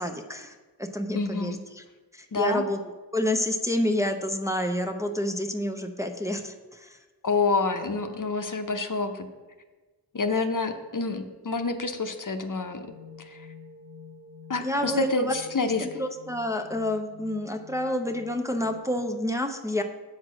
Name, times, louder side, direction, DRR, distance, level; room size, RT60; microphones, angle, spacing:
voice 1, 0.0-1.8 2.1-2.8 3.1-7.0 14.6-19.8, left 1 dB, 5° right, 4 dB, 0.7 m, -29 dB
voice 2, 1.1-1.6 2.3-2.6 7.2-9.3 10.1-12.9 13.2-13.5 14.5-16.0, left 3 dB, 50° left, 6 dB, 0.8 m, -28 dB
sound 1, 12.8-18.8, left 5 dB, 80° right, 1.5 m, -48 dB
7.5 x 4.6 x 6.1 m, 1.3 s
wide cardioid pair, 45°, 41 cm